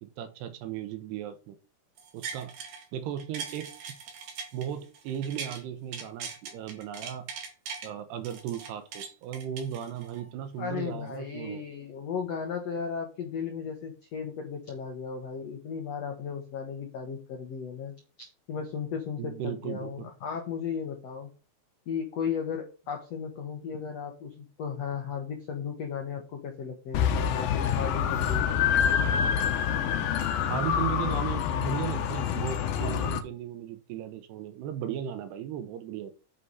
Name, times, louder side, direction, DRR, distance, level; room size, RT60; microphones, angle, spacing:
voice 1, 0.0-1.6 2.1-2.5 2.9-3.7 4.5-7.3 7.8-11.6 19.2-20.1 30.5-36.1, right 10 dB, 75° right, 10 dB, 3.0 m, -36 dB
sound 1, 2.0-2.8 3.2-5.6 5.9-7.9 8.2-10.2 10.7-10.8, right 6 dB, 60° right, 3.4 m, -40 dB
voice 2, 10.6-17.9 18.5-21.3 21.9-28.4, left 6 dB, 85° left, 3 dB, 1.4 m, -35 dB
sound 2, 26.9-33.2, left 8 dB, 70° left, 2.3 m, -27 dB
9.2 x 6.7 x 4.2 m, 0.34 s
omnidirectional pair, 5.1 m